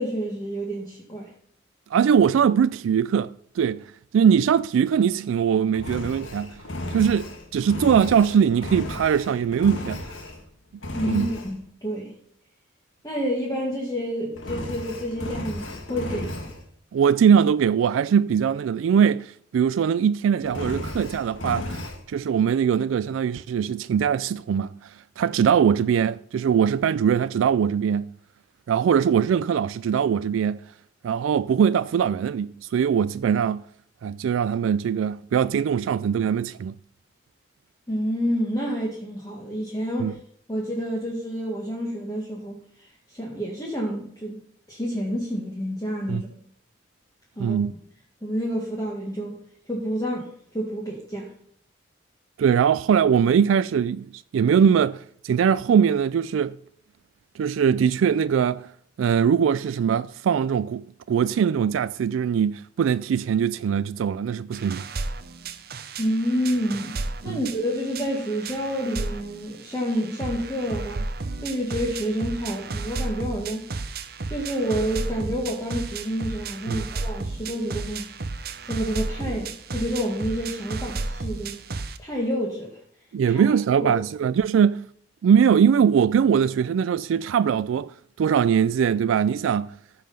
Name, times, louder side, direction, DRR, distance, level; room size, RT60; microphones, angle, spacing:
voice 1, 0.0-1.3 10.9-12.1 13.0-16.5 37.9-40.2 40.5-44.4 44.7-46.3 47.4-47.6 48.2-49.4 49.7-51.3 66.0-71.1 71.4-73.7 74.3-78.1 78.6-81.6 82.0-82.8 83.3-83.9, equal, 20° left, 1.7 m, -29 dB
voice 2, 1.9-3.8 4.1-6.5 6.9-10.0 11.1-11.3 16.9-28.1 28.7-30.6 31.0-33.6 34.0-36.7 40.0-40.1 46.1-46.2 47.4-47.7 52.4-56.6 57.4-58.7 59.0-64.8 67.3-67.4 76.7-76.8 83.1-84.9 85.2-89.7, right 7 dB, 85° right, 0.3 m, -21 dB
Engine, 5.7-10.5 10.8-11.5 14.4-16.6 20.4-22.0, left 1 dB, 80° left, 1.6 m, -34 dB
sound 1, 64.5-82.0, right 3 dB, 50° right, 0.7 m, -33 dB
14.5 x 5.7 x 5.6 m
head